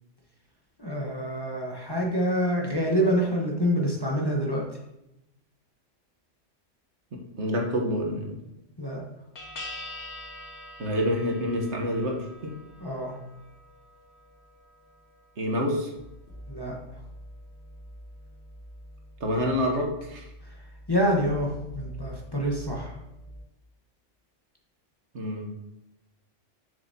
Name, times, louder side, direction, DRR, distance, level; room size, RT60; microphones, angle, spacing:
voice 1, 0.8-4.6 8.8-9.0 12.8-13.1 16.5-16.8 20.9-23.0, equal, 20° left, -2 dB, 1.0 m, -26 dB
voice 2, 7.1-8.4 10.8-12.5 15.4-15.9 19.2-20.3 25.1-25.5, equal, 70° right, 1 dB, 1.4 m, -28 dB
sound 1, 8.4-8.7 9.4-23.4, left 1 dB, 65° left, 1.6 m, -45 dB
6.9 x 6.8 x 2.8 m, 0.88 s
omnidirectional pair, 1.3 m